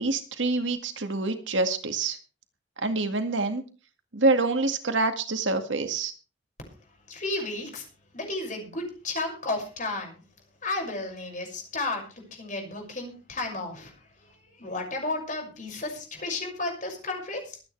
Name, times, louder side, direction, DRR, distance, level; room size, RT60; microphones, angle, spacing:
voice 1, 0.0-2.2 2.8-3.6 4.1-6.1, right 3 dB, 85° right, 7 dB, 2.0 m, -26 dB
voice 2, 7.1-7.8 8.1-10.2 10.6-17.6, left 2 dB, 45° left, 2 dB, 6.1 m, -33 dB
23.5 x 9.5 x 3.3 m, 0.34 s
head